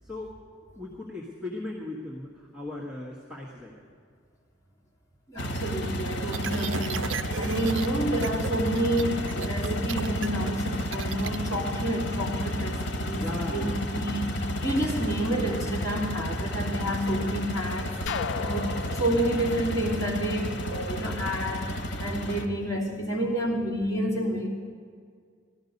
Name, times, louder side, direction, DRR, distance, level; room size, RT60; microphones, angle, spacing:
voice 1, 0.0-0.3 0.8-3.7 13.2-13.7, left 2 dB, 5° right, -5 dB, 1.5 m, -38 dB
voice 2, 5.3-21.7 22.0-24.5, right 1 dB, 15° left, -6 dB, 2.8 m, -29 dB
sound 1, 5.4-22.5, equal, 65° left, 1.2 m, -32 dB
sound 2, 6.3-7.9 8.2-8.5 8.8-11.4, right 7 dB, 90° right, 0.4 m, -35 dB
sound 3, 18.1-20.9, left 6 dB, 85° left, 0.4 m, -36 dB
17.0 x 13.0 x 5.3 m, 2.1 s
head